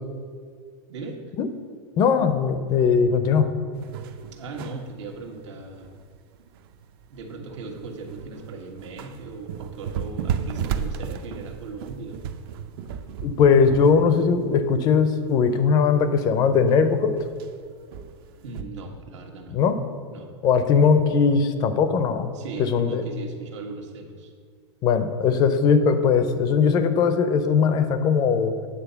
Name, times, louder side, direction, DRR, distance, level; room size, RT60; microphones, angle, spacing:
voice 1, 0.9-1.2 4.3-5.9 7.1-12.2 18.4-19.6 20.1-20.3 22.3-24.3, right 3 dB, 85° right, 2 dB, 1.5 m, -38 dB
voice 2, 2.0-3.5 13.2-17.2 19.5-19.8 20.4-22.3 22.6-23.0 24.8-28.5, left 6 dB, 30° left, 10 dB, 0.5 m, -20 dB
sound 1, 3.7-18.6, right 7 dB, 55° right, 0.5 m, -35 dB
9.0 x 4.2 x 6.8 m, 2.1 s
supercardioid pair, 155°, 15 cm